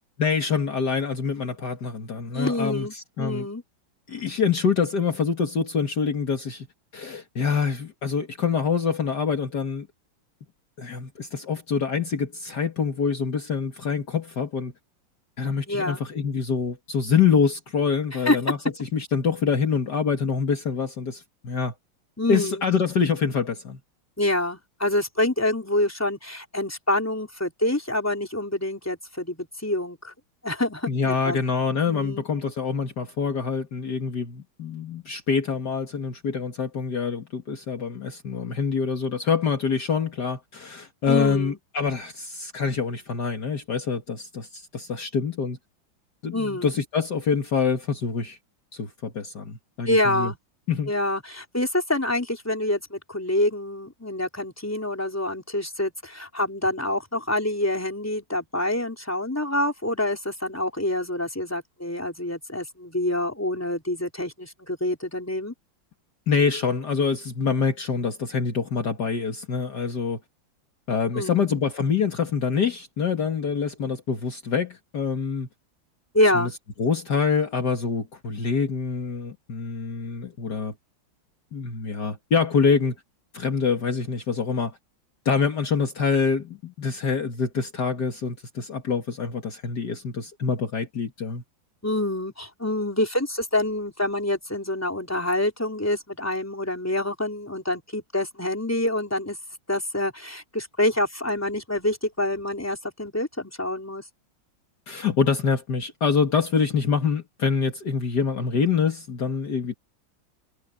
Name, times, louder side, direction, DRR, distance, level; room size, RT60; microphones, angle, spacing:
voice 1, 0.2-3.5 4.1-6.7 6.9-9.9 10.8-14.7 15.4-21.7 22.3-23.8 30.9-45.6 46.2-48.4 48.7-50.3 50.7-50.9 66.3-70.2 70.9-75.5 76.3-76.5 76.8-80.7 81.5-82.9 83.3-84.8 85.3-91.4 104.9-109.7, left 5 dB, 55° left, 2.4 m, -25 dB
voice 2, 2.3-3.6 15.7-16.0 18.3-18.4 22.2-22.6 24.2-30.1 30.4-31.4 31.9-32.2 41.1-41.6 46.3-46.7 49.9-50.4 50.9-65.5 71.1-71.4 76.1-76.5 91.8-99.4 99.7-104.0, left 1 dB, 5° left, 3.9 m, -26 dB
omnidirectional pair, 2.2 m